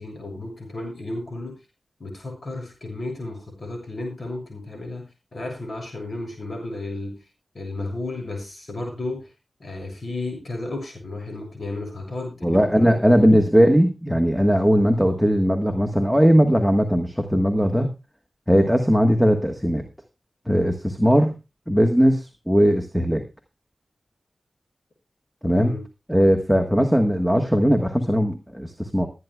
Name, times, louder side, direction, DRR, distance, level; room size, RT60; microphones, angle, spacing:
voice 1, 0.0-1.5 2.0-5.0 5.3-7.2 7.5-9.3 9.6-13.0 25.5-25.8, left 2 dB, 60° left, 2 dB, 7.3 m, -33 dB
voice 2, 12.4-17.9 18.5-19.8 20.5-21.3 21.7-23.2 25.4-25.7 26.1-29.1, equal, ahead, 5 dB, 1.4 m, -19 dB
22.5 x 9.6 x 2.3 m, 0.27 s
cardioid pair, 55°, 0 cm